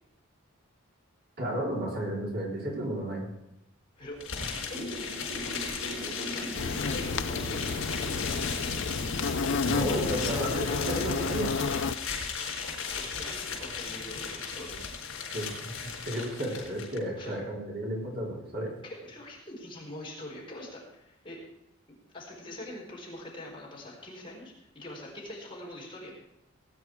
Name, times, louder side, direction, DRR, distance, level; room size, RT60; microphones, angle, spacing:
voice 1, 1.4-3.3 9.6-11.6 15.3-18.7, right 1 dB, 50° right, -2 dB, 3.8 m, -33 dB
sound 1, 4.2-17.0, left 5 dB, 80° left, 4.5 m, -36 dB
voice 2, 4.5-5.0 5.4-5.9 6.2-8.5 12.4-12.5 13.0-14.8 17.2-17.3 18.8-21.4 22.1-26.1, left 1 dB, 25° left, -3 dB, 4.5 m, -44 dB
sound 2, 4.7-10.2, right 1 dB, 80° right, 6.0 m, -40 dB
sound 3, 6.5-11.9, left 4 dB, 60° left, 0.6 m, -31 dB
18.5 x 9.6 x 4.8 m, 0.86 s
head